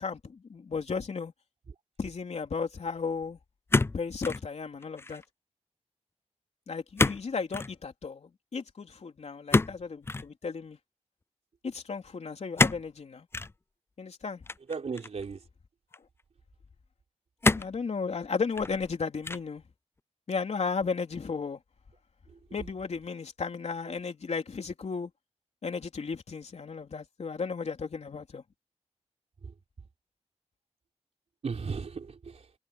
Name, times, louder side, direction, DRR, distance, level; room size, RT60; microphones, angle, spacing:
voice 1, 0.0-1.3 2.0-3.4 3.9-5.2 6.7-10.8 11.6-13.3 14.0-14.5 17.6-19.6 20.3-21.6 22.5-25.1 25.6-28.4, left 5 dB, 70° left, 3.5 m, -34 dB
sound 1, 3.7-4.5 4.8-5.2 7.0-7.2 7.5-7.7 9.5-10.3 12.6-12.9 13.3-13.5 14.5-15.2 15.9-16.0 17.4-17.8 18.4-18.9 19.2-19.6, left 3 dB, 20° left, 0.4 m, -27 dB
voice 2, 14.7-15.5 22.3-22.4 29.4-29.5 31.4-32.5, right 5 dB, 75° right, 3.9 m, -36 dB
wide cardioid pair, 125°, 12 cm